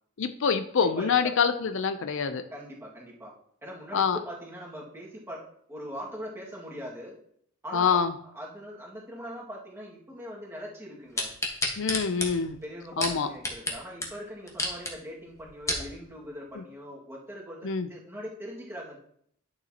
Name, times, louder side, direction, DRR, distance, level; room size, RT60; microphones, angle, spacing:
voice 1, 0.2-2.4 3.9-4.2 7.7-8.1 11.8-12.6 13.0-13.3 16.6-16.7 17.6-17.9, left 6 dB, 65° left, 9 dB, 0.5 m, -26 dB
voice 2, 1.0-1.3 2.5-3.3 3.6-5.4 5.7-7.2 7.6-8.0 8.3-11.3 12.6-19.0, equal, 10° right, -4 dB, 1.9 m, -41 dB
sound 1, 11.2-13.7 14.0-14.1 14.5-14.9 15.4-15.9 16.5-16.6, left 2 dB, 15° left, 1.3 m, -30 dB
11.0 x 6.7 x 2.9 m, 0.68 s
head